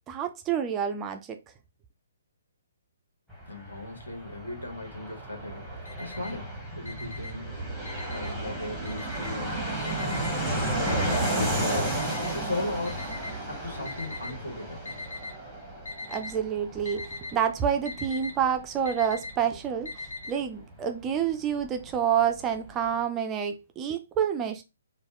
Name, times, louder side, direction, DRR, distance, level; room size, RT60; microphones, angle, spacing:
voice 1, 0.1-1.4 16.1-24.6, right 8 dB, 15° right, 0.3 m, -28 dB
Fixed-wing aircraft airplane, 3.3-21.7 21.9-22.0 22.2-22.9, right 1 dB, 5° left, 0.9 m, -33 dB
voice 2, 3.5-7.6 8.1-13.2 13.5-14.9, left 2 dB, 75° left, 1.4 m, -38 dB
Alarm, 5.5-6.5 6.8-8.5 8.9-9.5 9.9-14.3 14.9-15.5 15.7-16.4 16.6-20.3, left 3 dB, 55° left, 0.9 m, -41 dB
3.3 x 2.1 x 3.5 m
figure-of-eight pair, 130°, 0 cm